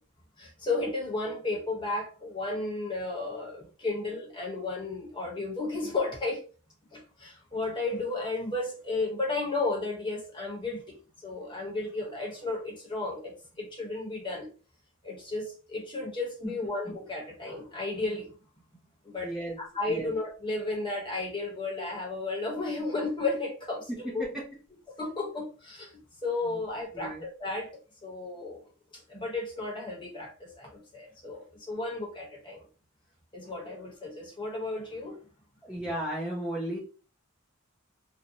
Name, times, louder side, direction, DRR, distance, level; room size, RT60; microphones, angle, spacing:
voice 1, 0.4-6.4 6.9-11.0 11.2-14.5 15.0-18.3 19.0-19.3 19.6-24.3 25.0-27.7 28.0-28.6 29.1-32.6 33.3-35.2, left 3 dB, 20° left, 0.9 m, -33 dB
voice 2, 19.2-19.6 19.8-20.1 24.2-24.5 26.4-26.6 26.9-27.2 35.6-36.8, right 1 dB, 5° right, 0.5 m, -35 dB
2.6 x 2.0 x 2.7 m
head